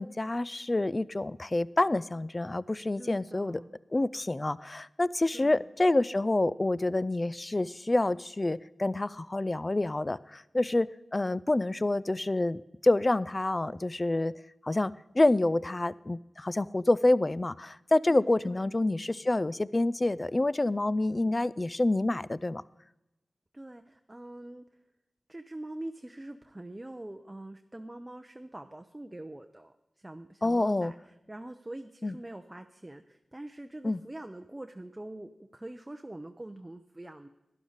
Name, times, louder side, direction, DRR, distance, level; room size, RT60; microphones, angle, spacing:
voice 1, 0.0-3.6 3.9-14.3 14.6-22.6 30.4-30.9 32.0-32.1 33.8-34.0, left 2 dB, 30° left, 19 dB, 0.3 m, -27 dB
voice 2, 3.0-3.7 5.3-5.6 18.1-18.7 21.1-21.4 23.5-24.7 25.3-37.3, right 1 dB, 20° right, 7 dB, 0.6 m, -44 dB
12.0 x 11.0 x 3.9 m, 0.96 s
cardioid pair, 60°, 0 cm